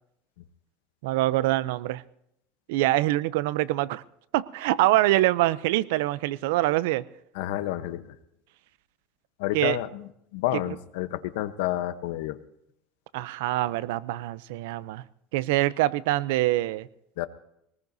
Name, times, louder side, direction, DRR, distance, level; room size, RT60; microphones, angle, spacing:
voice 1, 1.0-2.0 2.7-4.0 4.3-7.0 9.5-9.8 13.1-15.0 15.3-16.9, right 16 dB, 85° right, 18 dB, 0.5 m, -24 dB
voice 2, 7.3-8.0 9.4-12.4 17.2-17.3, left 14 dB, 85° left, 12 dB, 0.9 m, -30 dB
22.0 x 19.5 x 2.7 m, 0.76 s
cardioid pair, 145°, 0 cm